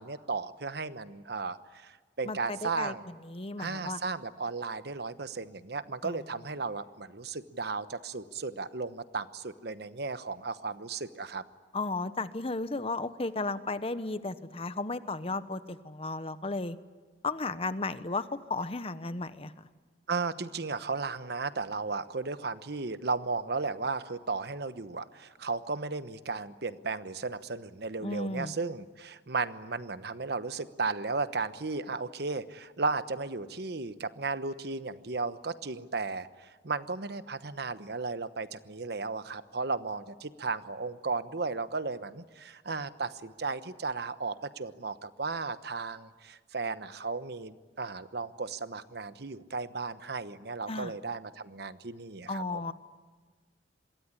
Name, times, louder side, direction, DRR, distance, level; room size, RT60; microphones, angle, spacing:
voice 1, 0.0-3.0 3.6-11.4 20.1-52.7, right 4 dB, 65° right, 12 dB, 1.1 m, -35 dB
voice 2, 2.2-4.0 6.0-6.2 11.7-16.8 17.2-19.7 28.0-28.5 50.7-50.9 52.3-52.7, left 3 dB, 35° left, 13 dB, 1.1 m, -34 dB
26.5 x 22.5 x 9.9 m, 1.4 s
head